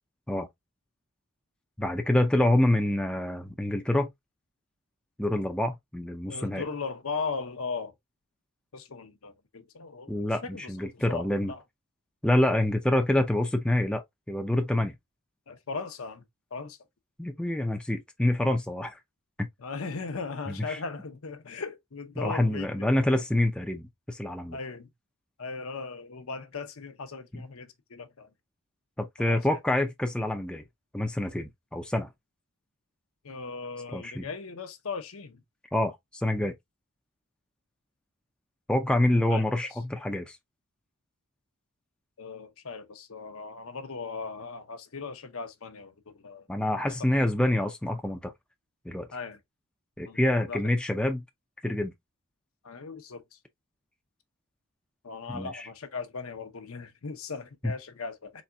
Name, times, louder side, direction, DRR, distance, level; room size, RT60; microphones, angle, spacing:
voice 1, 1.8-4.1 5.2-6.6 10.1-11.5 12.2-14.9 17.2-19.0 19.4-19.5 20.7-20.8 22.2-24.6 27.3-27.4 29.0-30.6 30.9-32.1 33.9-34.3 35.7-36.0 36.2-36.5 38.7-40.4 46.5-48.3 48.9-49.1 50.0-51.2 51.6-51.9 55.3-55.6 57.6-57.7, left 1 dB, 5° left, 0.4 m, -26 dB
voice 2, 6.3-7.9 8.7-11.6 15.5-16.2 16.5-16.8 19.6-22.9 24.5-24.9 25.4-28.3 29.2-29.5 33.2-35.4 39.3-39.4 42.2-46.5 46.8-47.1 49.1-49.4 50.0-50.6 52.6-53.4 55.0-58.4, left 4 dB, 70° left, 0.8 m, -38 dB
4.2 x 3.4 x 2.3 m
head